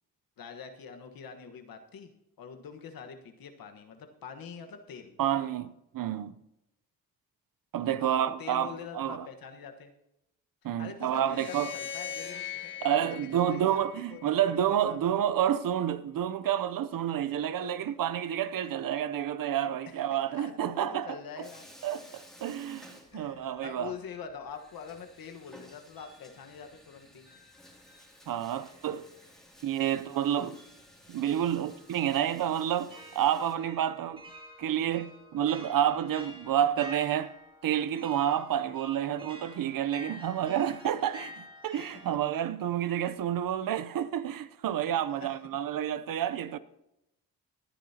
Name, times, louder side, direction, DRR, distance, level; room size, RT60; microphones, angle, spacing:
voice 1, 0.4-2.1 2.4-5.1 8.0-9.9 10.8-15.2 17.5-17.9 19.9-22.1 23.1-27.3 33.9-34.0 42.1-42.2 45.1-45.3, left 6 dB, 75° left, 1.4 m, -45 dB
voice 2, 5.2-6.4 7.7-9.3 10.6-11.7 12.8-21.2 21.8-23.9 28.3-29.0 29.6-30.5 31.1-34.2 34.6-37.3 37.6-46.6, right 10 dB, 70° right, 0.7 m, -29 dB
sound 1, 11.2-14.5, left 9 dB, 35° left, 1.4 m, -40 dB
Bathtub (filling or washing), 21.4-23.7 24.0-24.1 24.5-33.5, equal, ahead, 2.7 m, -55 dB
sound 2, 23.1-25.6 26.0-42.1, equal, 15° right, 2.2 m, -51 dB
19.0 x 10.0 x 2.9 m
cardioid pair, 85°, 35 cm